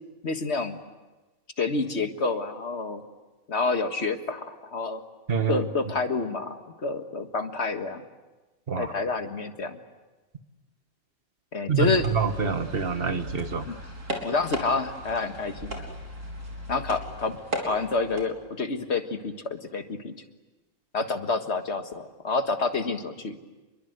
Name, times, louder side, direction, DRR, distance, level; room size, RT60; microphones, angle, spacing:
voice 1, 0.2-0.8 1.6-3.0 3.5-5.0 5.5-8.0 8.8-9.8 11.5-12.1 13.7-13.8 14.2-15.9 16.7-20.1 20.9-23.4, left 4 dB, 55° left, 7 dB, 1.9 m, -28 dB
voice 2, 5.3-5.6 8.7-8.9 11.7-13.7, right 5 dB, 45° right, 8 dB, 1.6 m, -26 dB
sound 1, 11.8-18.2, equal, 80° right, 4.1 m, -37 dB
28.5 x 22.5 x 8.0 m, 1.2 s
omnidirectional pair, 1.4 m